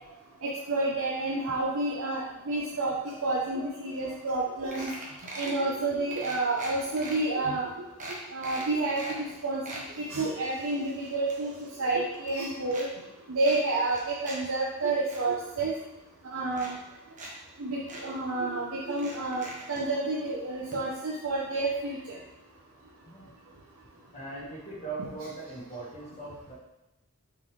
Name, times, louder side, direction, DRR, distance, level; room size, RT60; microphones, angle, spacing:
voice 1, 0.4-4.9 5.4-7.7 8.3-11.5 11.8-12.9 13.3-15.7 16.3-16.8 17.6-22.2, right 2 dB, 75° right, -4 dB, 0.8 m, -29 dB
sound 1, 4.0-4.1 4.3-4.4 4.7-5.6 6.1-7.2 7.6-7.7 8.0-9.2 9.5-9.9 10.4-11.9 12.1-12.9 13.4-14.4 14.7-15.2 16.0-16.1 16.5-17.3 17.6-17.7 17.9-18.0 18.9-19.8 20.7-20.8 21.1-21.2, right 1 dB, 35° right, 1.3 m, -42 dB
voice 2, 24.1-26.5, right 3 dB, 30° left, -6 dB, 1.5 m, -40 dB
6.6 x 4.5 x 3.3 m, 0.94 s
head